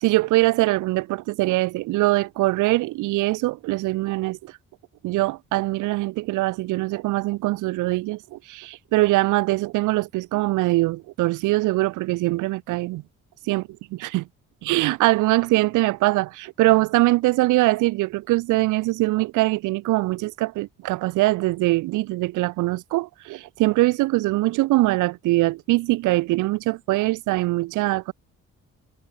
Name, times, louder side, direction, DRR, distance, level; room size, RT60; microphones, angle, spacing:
voice 1, 0.0-4.5 5.0-13.0 13.5-13.6 14.1-14.3 14.6-28.1, right 19 dB, 85° right, 0.5 m, -22 dB
cardioid pair, 90°, 30 cm